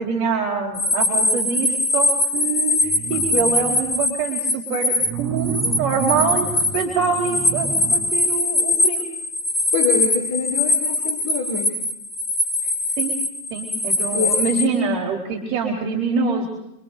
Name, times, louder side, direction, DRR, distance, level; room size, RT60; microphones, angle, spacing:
voice 1, 0.0-9.1 13.0-13.1 13.5-16.5, right 5 dB, 40° right, 0 dB, 4.2 m, -25 dB
sound 1, 0.7-5.1 5.4-14.7, left 2 dB, 15° left, 3.3 m, -22 dB
sound 2, 2.8-4.1 5.0-8.2 8.7-8.8, right 6 dB, 10° right, 5.0 m, -31 dB
voice 2, 9.7-11.8 14.1-14.5, left 5 dB, 55° left, 5 dB, 3.7 m, -25 dB
26.0 x 26.0 x 6.6 m, 0.88 s
figure-of-eight pair, 90°, 0 cm